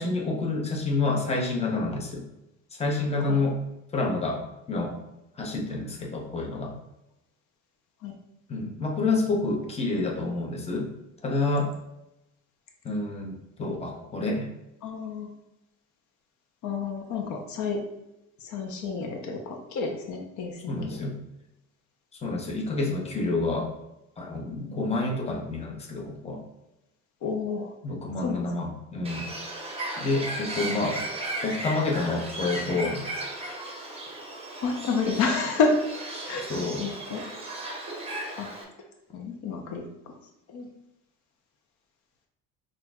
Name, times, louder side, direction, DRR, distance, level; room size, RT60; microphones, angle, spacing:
voice 1, 0.0-2.2 2.8-3.6 3.9-4.4 4.7-4.9 5.4-6.8 8.5-10.9 11.2-11.7 12.8-14.5 20.7-21.2 22.2-23.7 24.2-26.4 27.8-29.3 29.5-31.0 31.4-33.0 36.5-36.9, left 3 dB, 20° left, -1 dB, 0.8 m, -28 dB
voice 2, 14.8-15.3 16.6-17.8 18.4-20.8 27.2-27.7 28.2-28.4 34.6-35.7 36.3-36.5 36.8-37.2 38.3-38.5 39.1-39.8 40.5-40.7, left 4 dB, 65° left, 2 dB, 0.8 m, -29 dB
Bird, 29.0-38.6, right 1 dB, 20° right, 0.8 m, -36 dB
5.7 x 2.6 x 2.3 m, 0.90 s
cardioid pair, 115°, 31 cm